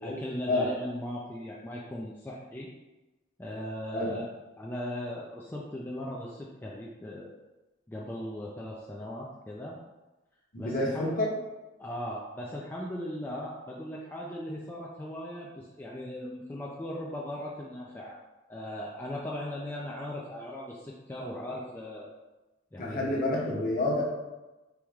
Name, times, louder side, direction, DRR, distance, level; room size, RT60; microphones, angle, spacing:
voice 1, 0.0-2.7 3.4-7.3 7.9-9.8 10.6-11.2 11.8-18.2 18.5-22.1 22.7-23.2, left 1 dB, 10° left, -4 dB, 0.4 m, -38 dB
voice 2, 10.5-11.3 22.8-24.0, left 2 dB, 45° left, -2 dB, 1.0 m, -28 dB
4.7 x 3.0 x 3.5 m, 1.1 s
head